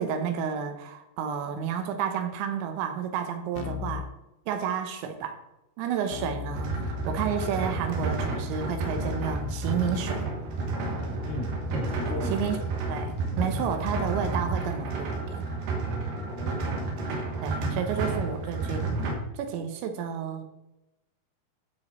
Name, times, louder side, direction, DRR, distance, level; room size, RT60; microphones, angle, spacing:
voice 1, 0.0-4.1 4.5-5.4 5.8-10.3 12.1-12.6 12.9-15.4 17.4-19.0 19.4-20.5, right 7 dB, 85° right, 6 dB, 3.2 m, -31 dB
Keyboard (musical), 3.6-4.1 6.1-15.0, left 9 dB, 80° left, 2.4 m, -39 dB
sound 1, 6.5-19.1, right 3 dB, 60° right, 2.6 m, -31 dB
voice 2, 11.8-12.5 16.1-17.2, left 2 dB, 20° right, -3 dB, 2.0 m, -38 dB
13.0 x 5.0 x 4.2 m, 0.94 s
omnidirectional pair, 5.1 m